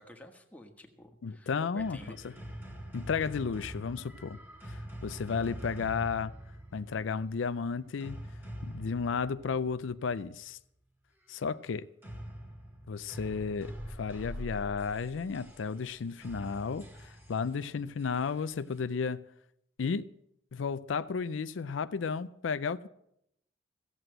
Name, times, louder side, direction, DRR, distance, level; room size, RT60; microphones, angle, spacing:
voice 1, 0.0-2.2, left 1 dB, 10° left, 1.4 m, -51 dB
voice 2, 1.2-2.2 2.9-4.4 4.6-6.3 6.7-8.3 8.6-10.6 11.3-11.9 12.9-13.7 14.0-19.3 19.8-20.1 20.5-22.9, left 5 dB, 85° left, 0.5 m, -33 dB
sound 1, 1.8-10.2 12.0-18.8, equal, 10° right, 1.7 m, -44 dB
15.5 x 7.9 x 7.8 m
head